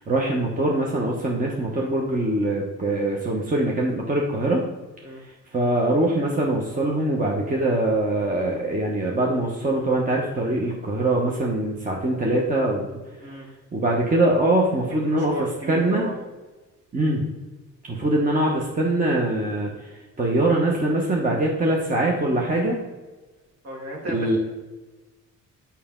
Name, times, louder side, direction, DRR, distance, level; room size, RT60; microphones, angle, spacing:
voice 1, 0.0-4.6 5.5-12.9 13.7-15.4 15.7-16.1 16.9-17.2 17.8-19.7 20.2-22.8 24.1-24.4, right 1 dB, 25° right, -1 dB, 1.1 m, -23 dB
voice 2, 14.9-16.1 23.6-24.4, right 1 dB, 55° right, -1 dB, 2.3 m, -34 dB
6.8 x 5.7 x 3.8 m, 1.2 s
cardioid pair, 90°, 30 cm